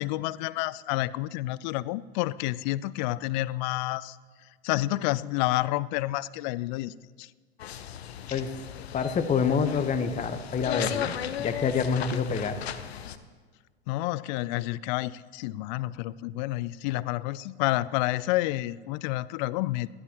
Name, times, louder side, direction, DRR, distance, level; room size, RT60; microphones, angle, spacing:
voice 1, 0.0-4.2 4.6-7.3 13.9-19.9, left 17 dB, 45° left, 20 dB, 0.4 m, -29 dB
sound 1, 7.6-13.2, left 10 dB, 70° left, 0.8 m, -36 dB
voice 2, 8.9-12.6, left 6 dB, 20° left, 9 dB, 1.1 m, -27 dB
28.5 x 11.5 x 3.0 m, 1.5 s
figure-of-eight pair, 85°, 32 cm